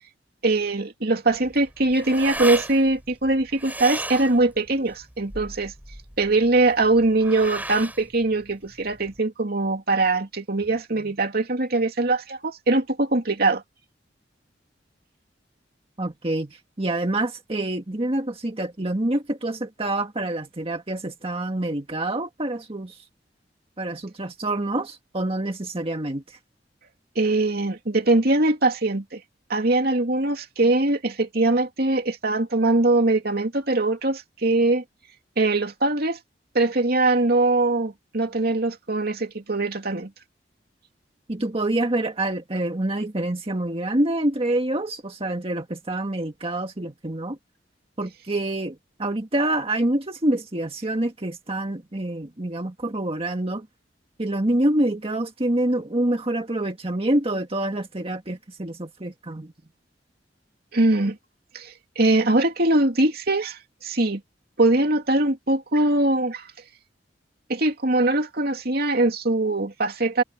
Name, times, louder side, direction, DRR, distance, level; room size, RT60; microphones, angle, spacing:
voice 1, 0.4-5.7 6.2-13.6 27.2-29.2 29.5-34.8 35.4-36.2 36.5-40.1 60.7-61.2 61.5-64.2 64.6-66.5 67.5-70.2, right 2 dB, 60° right, 2.7 m, -22 dB
sound 1, 1.3-9.2, right 1 dB, 10° right, 7.4 m, -36 dB
voice 2, 16.0-23.0 23.8-26.4 41.3-47.4 48.0-53.7 54.2-59.5, right 1 dB, 30° right, 1.7 m, -26 dB
head